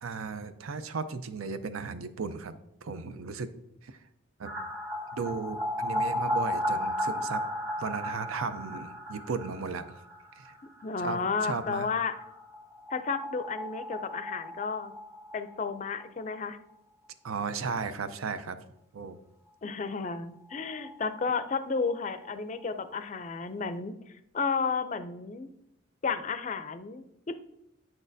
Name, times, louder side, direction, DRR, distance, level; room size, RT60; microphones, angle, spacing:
voice 1, 0.0-3.5 3.8-4.0 4.4-4.5 5.1-7.4 7.8-10.0 10.3-10.5 11.0-11.9 17.2-18.6 18.9-19.2, right 5 dB, 90° right, 11 dB, 0.5 m, -35 dB
sound 1, 4.4-16.0 16.3-16.4 16.7-16.8 19.8-19.9 20.2-20.3 20.5-22.3 22.6-22.7, left 1 dB, 15° right, 1.1 m, -35 dB
voice 2, 10.8-12.2 12.9-14.9 15.3-16.6 19.6-23.9 24.3-25.5 26.0-27.4, left 5 dB, 35° left, 11 dB, 0.4 m, -32 dB
8.6 x 6.2 x 2.6 m, 0.81 s
head